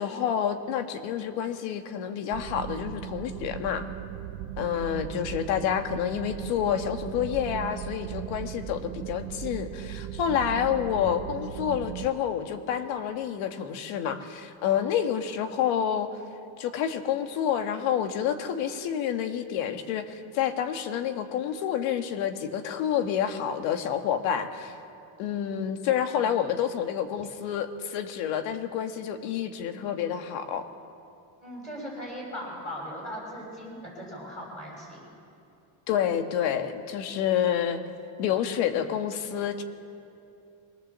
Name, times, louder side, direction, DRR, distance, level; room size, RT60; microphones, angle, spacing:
voice 1, 0.0-3.9 4.6-16.1 16.6-24.8 25.2-30.7 35.9-37.8 38.2-39.6, left 9 dB, 75° left, 7 dB, 1.7 m, -28 dB
sound 1, 2.3-12.1, right 12 dB, 80° right, 1.0 m, -38 dB
voice 2, 31.4-35.0, equal, 15° left, -3 dB, 7.6 m, -38 dB
23.5 x 18.0 x 7.5 m, 2.7 s
cardioid pair, 145°, 46 cm